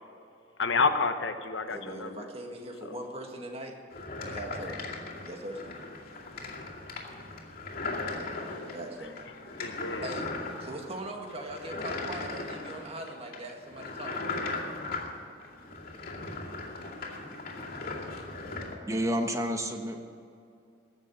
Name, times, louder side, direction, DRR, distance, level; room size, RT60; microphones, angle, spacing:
voice 1, 0.6-2.3 2.9-3.0 9.6-10.1, left 4 dB, 80° left, 8 dB, 1.0 m, -29 dB
voice 2, 1.7-3.7 4.2-4.8 5.2-5.7 8.7-9.2 10.0-10.3 10.6-14.6, right 1 dB, 35° right, 2 dB, 1.7 m, -40 dB
sound 1, 3.9-18.8, left 3 dB, 50° left, 2.4 m, -38 dB
voice 3, 18.9-20.0, equal, 15° right, 4 dB, 1.1 m, -29 dB
15.0 x 6.9 x 9.3 m, 2.5 s
head